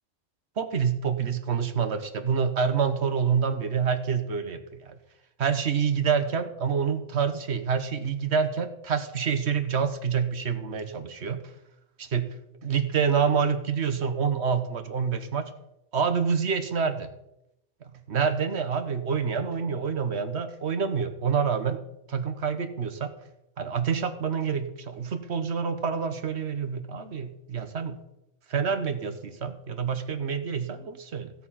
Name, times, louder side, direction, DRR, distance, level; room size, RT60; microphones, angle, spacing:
voice 1, 0.6-5.0 5.4-11.4 12.0-12.3 12.6-15.5 15.9-17.1 17.8-21.8 22.1-23.1 23.6-28.0 28.5-31.3, right 6 dB, 70° right, 10 dB, 1.4 m, -27 dB
16.0 x 7.3 x 5.7 m, 0.85 s
omnidirectional pair, 1.2 m